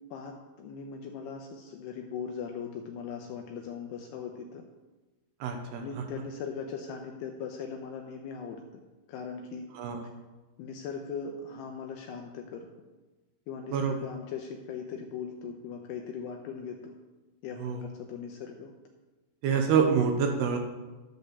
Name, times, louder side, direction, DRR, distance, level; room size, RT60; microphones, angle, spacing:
voice 1, 0.1-4.6 5.8-8.6 9.1-9.7 10.6-12.7 13.5-16.9 17.4-18.7, left 6 dB, 80° left, 3 dB, 2.4 m, -39 dB
voice 2, 5.4-5.8 9.7-10.0 13.7-13.9 17.6-17.8 19.4-20.6, right 6 dB, 80° right, 4 dB, 2.5 m, -26 dB
12.5 x 5.2 x 6.7 m, 1.2 s
omnidirectional pair, 5.5 m